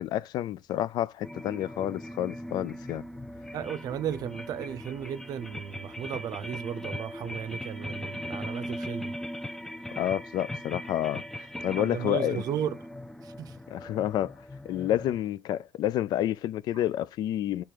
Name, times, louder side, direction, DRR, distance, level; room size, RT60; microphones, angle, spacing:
voice 1, 0.0-3.0 9.9-12.4 13.7-14.4 14.6-17.6, left 12 dB, 75° left, 0.4 m, -29 dB
sound 1, 1.2-15.2, left 1 dB, 5° left, 0.6 m, -39 dB
voice 2, 3.5-9.2 11.8-12.8 13.2-13.6 16.7-16.8, right 9 dB, 65° right, 0.6 m, -35 dB
6.6 x 3.5 x 5.9 m
cardioid pair, 120°, 7 cm